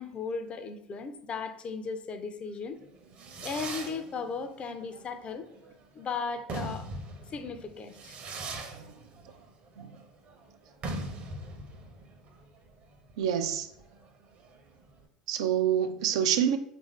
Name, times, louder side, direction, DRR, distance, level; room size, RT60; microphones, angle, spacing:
voice 1, 0.0-2.8 3.4-5.5 5.9-6.9 7.3-8.2, left 5 dB, 35° left, 0.4 m, -36 dB
Fireworks, 2.8-15.0, right 2 dB, 40° right, 0.7 m, -41 dB
voice 2, 13.2-13.7 15.3-16.6, right 9 dB, 70° right, 0.4 m, -27 dB
3.4 x 2.6 x 3.2 m
figure-of-eight pair, 75°, 3 cm